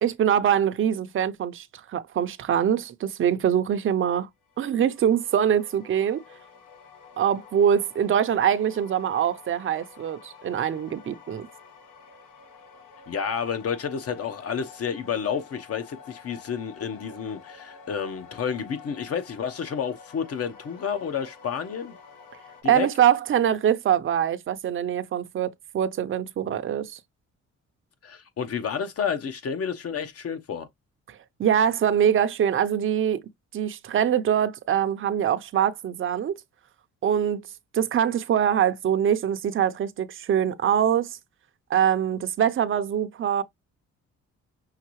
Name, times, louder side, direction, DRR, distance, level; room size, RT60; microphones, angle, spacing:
voice 1, 0.0-1.7 1.9-4.3 4.6-6.2 7.2-11.5 22.6-27.0 31.1-33.2 33.5-36.3 37.0-37.4 37.7-41.2 41.7-43.4, right 9 dB, 45° right, 0.6 m, -23 dB
sound 1, 4.4-22.6, left 6 dB, 85° left, 1.3 m, -49 dB
voice 2, 13.1-22.0 22.6-22.9 28.0-30.7, left 7 dB, 50° left, 0.9 m, -30 dB
5.7 x 2.6 x 3.1 m
cardioid pair, 90°, 30 cm